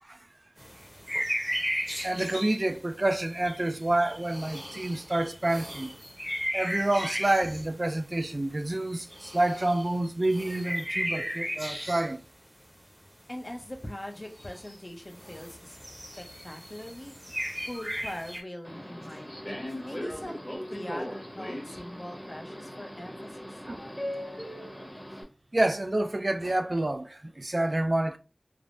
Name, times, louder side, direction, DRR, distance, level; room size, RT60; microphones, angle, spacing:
sound 1, 0.6-12.3 12.6-12.7 13.4-13.5 13.8-13.9 14.1-14.8 15.1-18.4, equal, 10° right, 0.7 m, -36 dB
voice 1, 2.0-5.9 6.5-12.2 23.7-23.8 25.5-28.2, right 1 dB, 50° right, 0.3 m, -28 dB
voice 2, 13.3-15.8 16.2-17.3 17.7-20.4 20.7-23.5, left 1 dB, 45° left, 0.6 m, -41 dB
Subway metro underground, 18.6-25.2, equal, 20° left, 0.9 m, -39 dB
3.3 x 2.0 x 2.5 m
wide cardioid pair, 50°, 0 cm